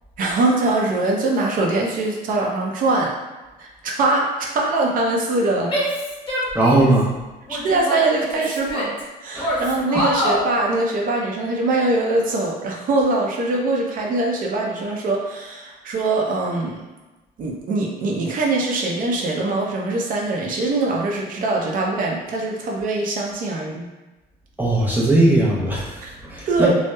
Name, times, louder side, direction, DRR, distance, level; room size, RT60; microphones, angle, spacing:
voice 1, 0.2-3.1 3.6-5.7 7.5-8.9 9.2-16.8 17.4-23.9 26.0-26.1 26.5-26.7, right 2 dB, 55° right, -1 dB, 0.5 m, -22 dB
Female speech woman speaking / Yell, 5.7-7.0 7.5-9.0 9.4-10.5, equal, 30° left, 0.8 m, -25 dB
voice 2, 6.5-7.1 9.3-9.6 24.6-26.7, right 1 dB, 10° right, -6 dB, 0.7 m, -18 dB
2.8 x 2.0 x 2.2 m, 1.1 s
cardioid pair, 110°, 17 cm